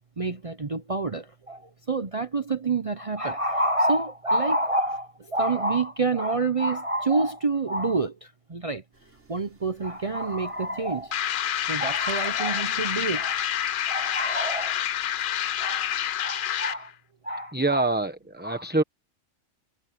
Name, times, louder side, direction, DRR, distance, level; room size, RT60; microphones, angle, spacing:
voice 1, 0.2-8.8 9.3-11.2 11.6-13.5 13.9-14.8 15.6-15.9 16.2-16.9 17.2-17.9 18.4-18.6, right 2 dB, 35° right, 0.8 m, -27 dB
sound 1, 8.9-16.2, right 2 dB, 75° right, 5.0 m, -52 dB
sound 2, 11.1-16.9, left 10 dB, 60° left, 0.6 m, -28 dB
voice 2, 17.5-18.8, right 2 dB, 10° right, 1.1 m, -25 dB
omnidirectional pair, 1.2 m